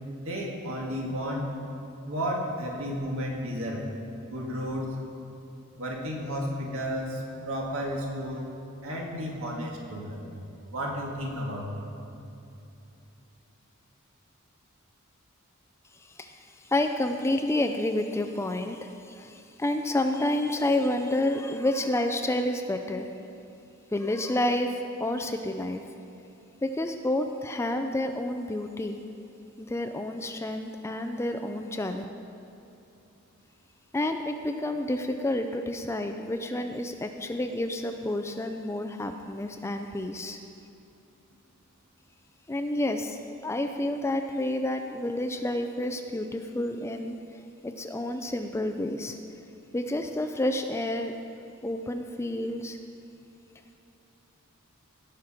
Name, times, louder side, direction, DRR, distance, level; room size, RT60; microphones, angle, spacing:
voice 1, 0.2-1.5 2.1-3.9 4.2-4.9 5.8-8.4 8.8-10.4 10.7-11.8, equal, 70° right, -1 dB, 1.8 m, -32 dB
voice 2, 15.9-23.1 23.9-25.8 26.6-29.0 29.6-32.0 33.9-40.4 42.5-47.2 47.6-49.2 49.7-51.1 51.6-52.8, left 1 dB, 10° left, 6 dB, 0.4 m, -29 dB
17.5 x 5.9 x 5.0 m, 2.8 s
head